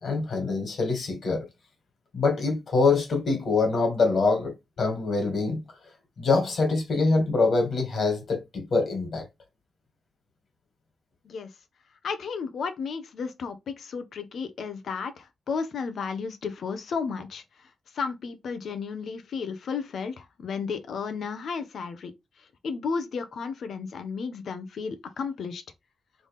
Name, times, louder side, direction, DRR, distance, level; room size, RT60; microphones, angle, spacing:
voice 1, 0.0-1.5 2.1-5.6 6.2-9.2, left 3 dB, 55° left, 2.0 m, -24 dB
voice 2, 12.0-17.4 17.9-22.1 22.6-25.6, left 5 dB, 70° left, 0.8 m, -33 dB
4.0 x 3.5 x 3.5 m
wide cardioid pair, 170°, 0 cm